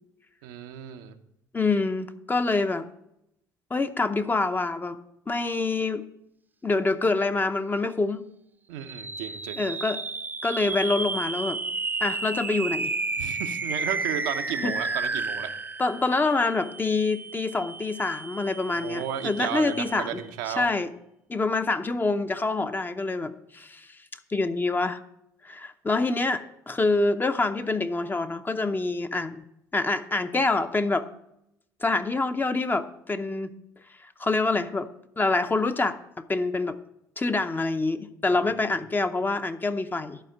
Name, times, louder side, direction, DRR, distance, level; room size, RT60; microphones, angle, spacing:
voice 1, 0.4-1.1 8.7-9.6 13.2-15.5 18.7-20.7 38.3-38.4, right 10 dB, 80° right, 6 dB, 0.7 m, -33 dB
voice 2, 1.5-2.9 3.7-5.0 5.3-6.0 6.6-8.3 9.6-10.0 10.4-11.6 12.0-12.9 14.6-14.7 15.8-20.2 20.5-20.9 21.3-23.9 24.3-25.0 25.4-29.4 29.7-31.0 31.8-33.5 34.0-34.9 35.2-36.8 37.2-40.2, left 3 dB, 20° left, 9 dB, 0.7 m, -26 dB
sound 1, 8.8-20.4, right 3 dB, 20° right, 0.6 m, -33 dB
11.5 x 4.3 x 6.5 m, 0.80 s
hypercardioid pair, 60°, 9 cm